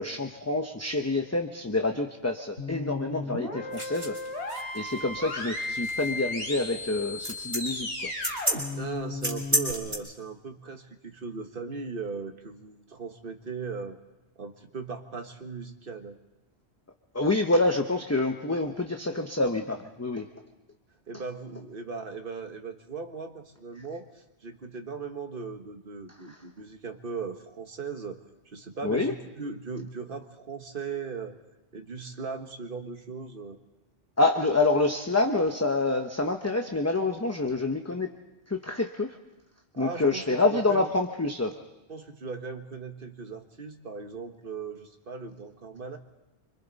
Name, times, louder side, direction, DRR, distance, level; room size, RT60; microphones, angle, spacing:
voice 1, 0.0-4.1 4.7-7.9 17.1-20.3 28.8-29.1 34.2-38.1 38.5-39.1 39.8-41.5, left 2 dB, 15° left, 4 dB, 0.8 m, -27 dB
sound 1, 2.6-9.7, left 2 dB, 85° left, 3.5 m, -35 dB
sound 2, 3.7-9.9, equal, 25° right, 3.6 m, -32 dB
voice 2, 8.7-14.0 14.3-16.2 21.1-28.2 28.5-31.4 31.7-33.6 39.7-40.9 41.9-46.0, right 5 dB, 55° right, 6 dB, 1.6 m, -38 dB
26.0 x 25.0 x 4.1 m, 0.99 s
omnidirectional pair, 1.1 m